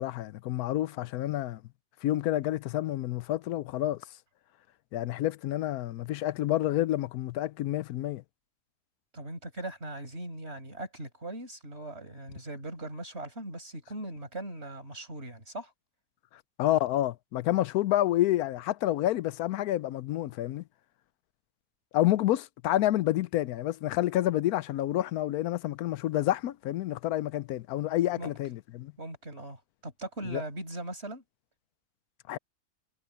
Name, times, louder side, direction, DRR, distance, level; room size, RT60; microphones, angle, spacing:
voice 1, 0.0-1.6 2.0-4.0 4.9-8.2 16.6-20.6 21.9-28.9 30.3-30.4 32.3-32.4, left 14 dB, 85° left, 1.1 m, -29 dB
voice 2, 9.1-15.7 28.2-28.3 29.0-31.2, right 2 dB, 45° right, 6.3 m, -40 dB
omnidirectional pair, 1.5 m